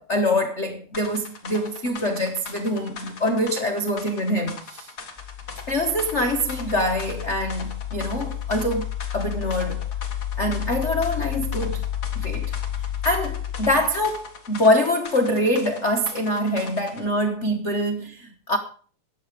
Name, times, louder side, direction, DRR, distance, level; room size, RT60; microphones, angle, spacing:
voice 1, 0.0-4.9 5.7-8.9 9.1-9.8 10.4-11.8 12.1-12.5 13.0-18.6, left 1 dB, 70° left, 0.6 m, -24 dB
sound 1, 0.9-17.1, left 4 dB, 35° left, 2.0 m, -41 dB
sound 2, 5.2-14.3, left 11 dB, 15° left, 3.1 m, -31 dB
14.0 x 9.8 x 5.0 m
omnidirectional pair, 3.4 m